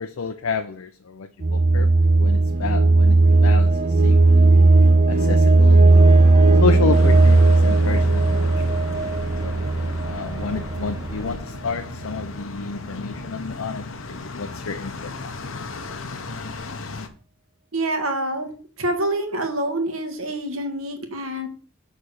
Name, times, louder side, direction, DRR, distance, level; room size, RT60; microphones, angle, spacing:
voice 1, 0.0-1.9 2.2-3.7 4.0-4.5 5.1-6.0 6.6-8.5 9.4-9.6 10.0-14.9 15.2-15.3, left 4 dB, 85° left, 0.6 m, -30 dB
sound 1, 1.4-11.2, right 2 dB, 40° right, 1.2 m, -16 dB
sound 2, 5.9-11.4, right 1 dB, 20° right, 1.3 m, -37 dB
sound 3, 6.9-17.1, left 3 dB, 65° left, 0.9 m, -36 dB
voice 2, 17.7-18.5 18.8-21.5, right 1 dB, 80° right, 1.8 m, -26 dB
6.9 x 4.2 x 6.4 m
head